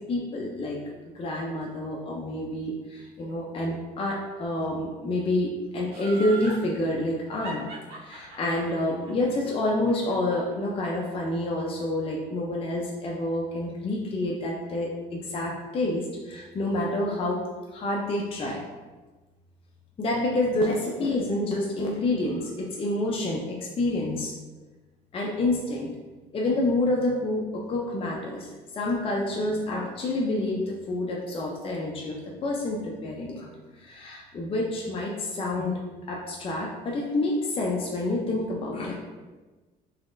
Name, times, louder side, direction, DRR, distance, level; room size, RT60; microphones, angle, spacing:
voice 1, 0.1-0.8 1.1-7.6 8.0-17.4 17.7-18.6 20.0-24.3 25.1-25.9 26.3-28.5 28.8-33.5 33.8-35.8 36.1-38.9, left 1 dB, 35° left, -2 dB, 0.6 m, -28 dB
Laughter, 5.9-6.6 7.4-10.5 10.9-11.0, right 2 dB, 75° right, 1.1 m, -39 dB
4.1 x 2.9 x 2.5 m, 1.2 s
cardioid pair, 110°, 17 cm